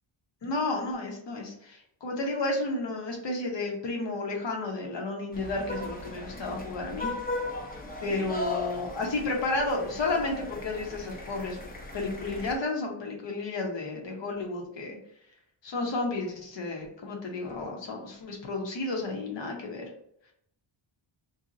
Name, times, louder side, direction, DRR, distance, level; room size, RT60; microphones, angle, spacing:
voice 1, 0.4-7.2 8.0-11.6 11.9-15.0 15.6-19.9, left 2 dB, 60° left, 1 dB, 0.9 m, -32 dB
sound 1, 5.3-12.5, left 2 dB, 20° left, 0.5 m, -37 dB
2.7 x 2.1 x 3.8 m, 0.71 s
wide cardioid pair, 95°, 49 cm